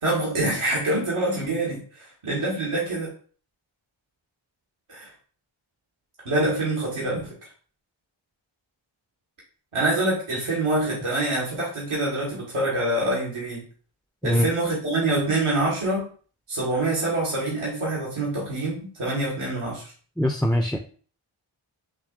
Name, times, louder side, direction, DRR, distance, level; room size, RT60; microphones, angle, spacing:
voice 1, 0.0-3.1 4.9-5.1 6.2-7.3 9.7-13.6 14.2-16.1 16.5-19.9, right 2 dB, 85° right, -4 dB, 1.4 m, -25 dB
voice 2, 20.2-20.8, equal, ahead, 4 dB, 0.3 m, -22 dB
6.3 x 2.9 x 2.4 m, 0.42 s
wide cardioid pair, 45°, 49 cm